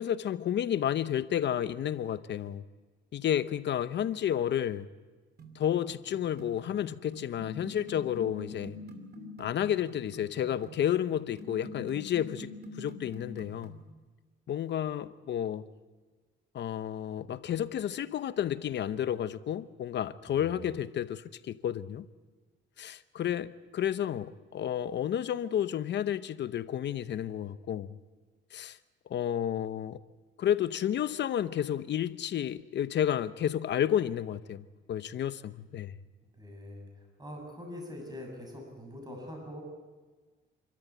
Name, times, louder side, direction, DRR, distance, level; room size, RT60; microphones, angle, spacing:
voice 1, 0.0-2.6 3.1-4.9 5.5-8.8 9.4-12.5 12.8-13.8 14.5-15.6 16.5-22.1 22.8-28.0 28.5-28.8 29.1-30.0 30.4-36.0, left 10 dB, 65° left, 0.9 m, -31 dB
sound 1, 5.4-13.9, left 1 dB, 55° right, 2.8 m, -46 dB
voice 2, 20.3-20.7 36.4-39.6, left 1 dB, 20° right, 7.4 m, -44 dB
28.0 x 13.5 x 8.4 m
cardioid pair, 90°, 20 cm